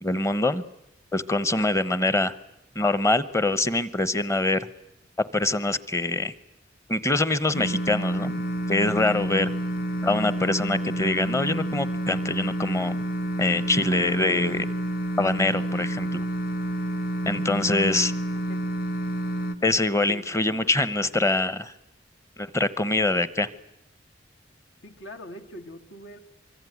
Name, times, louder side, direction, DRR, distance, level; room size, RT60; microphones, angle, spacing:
voice 1, 0.0-0.6 1.1-2.3 2.7-4.7 5.3-6.3 6.9-8.4 8.7-9.5 10.0-13.0 13.4-14.7 15.2-16.2 17.3-18.1 19.6-21.7 22.4-23.5, left 2 dB, 15° left, 15 dB, 1.0 m, -24 dB
sound 1, 7.5-19.5, right 1 dB, 55° left, 1.5 m, -29 dB
voice 2, 17.6-18.0 18.3-18.7 20.1-20.8 24.8-26.2, left 1 dB, 70° left, 4 dB, 2.4 m, -43 dB
24.5 x 24.0 x 9.5 m, 0.86 s
head